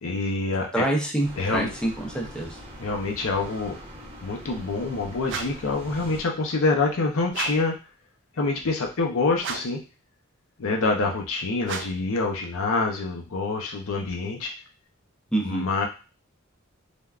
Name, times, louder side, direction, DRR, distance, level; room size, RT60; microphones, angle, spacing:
voice 1, 0.0-0.8 1.4-1.7 2.8-3.7 4.2-7.8 8.3-9.8 10.6-14.5 15.4-15.9, left 3 dB, 65° left, 1 dB, 0.6 m, -26 dB
voice 2, 0.7-2.6 15.3-15.7, right 1 dB, 5° left, -1 dB, 0.6 m, -26 dB
sound 1, 1.2-6.2, equal, 25° right, 0.8 m, -42 dB
sound 2, 5.3-5.7 7.3-7.8 9.4-9.9 11.6-12.1, right 6 dB, 60° right, 0.4 m, -35 dB
3.3 x 2.1 x 2.4 m, 0.32 s
head